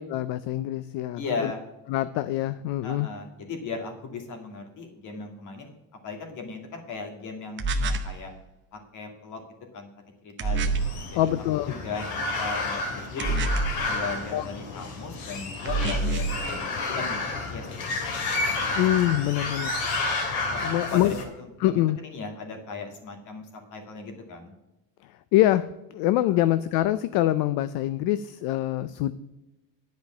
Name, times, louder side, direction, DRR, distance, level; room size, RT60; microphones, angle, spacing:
voice 1, 0.0-1.5 1.9-3.1 11.1-11.7 14.3-14.5 18.8-19.7 20.6-21.1 21.6-22.0 25.3-29.1, left 14 dB, 70° left, 14 dB, 0.5 m, -25 dB
voice 2, 1.2-1.6 2.8-5.7 6.0-8.3 8.7-9.4 9.7-9.9 10.2-11.3 11.7-13.5 13.9-18.2 20.5-24.5 26.3-26.4, left 4 dB, 50° left, 3 dB, 2.2 m, -37 dB
sound 1, 7.6-8.2 10.4-11.0 13.2-13.9 15.7-16.4, right 3 dB, 30° right, 0.8 m, -26 dB
sound 2, 10.4-21.2, left 3 dB, 90° left, 2.4 m, -31 dB
10.5 x 5.2 x 7.2 m, 0.97 s
cardioid pair, 165°, 38 cm